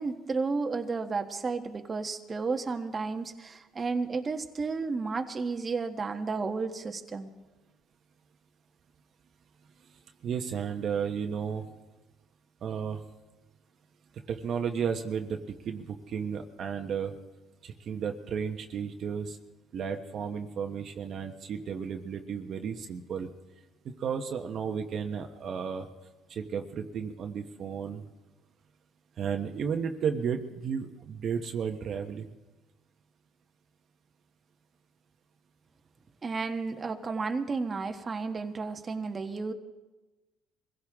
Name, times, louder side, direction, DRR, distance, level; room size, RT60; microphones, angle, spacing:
voice 1, 0.0-7.3 36.2-39.5, right 4 dB, 30° right, 5 dB, 1.3 m, -32 dB
voice 2, 10.2-11.7 12.6-13.0 14.3-17.1 17.6-19.4 19.7-23.3 23.8-25.9 26.3-28.0 29.2-32.3, right 7 dB, 50° right, 5 dB, 1.2 m, -33 dB
24.0 x 16.5 x 3.7 m, 1.2 s
cardioid pair, 100°, 0 cm